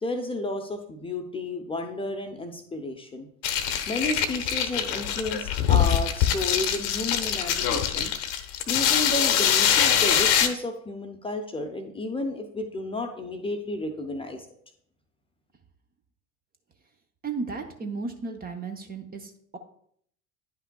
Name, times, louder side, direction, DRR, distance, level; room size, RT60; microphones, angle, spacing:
voice 1, 0.0-3.3 3.9-8.1 8.7-14.5, left 2 dB, 15° left, 4 dB, 0.8 m, -32 dB
sound 1, 3.4-10.5, left 9 dB, 50° left, 0.9 m, -23 dB
voice 2, 17.2-19.6, right 4 dB, 20° right, 4 dB, 0.9 m, -34 dB
10.0 x 5.7 x 2.3 m, 0.66 s
figure-of-eight pair, 70°, 40 cm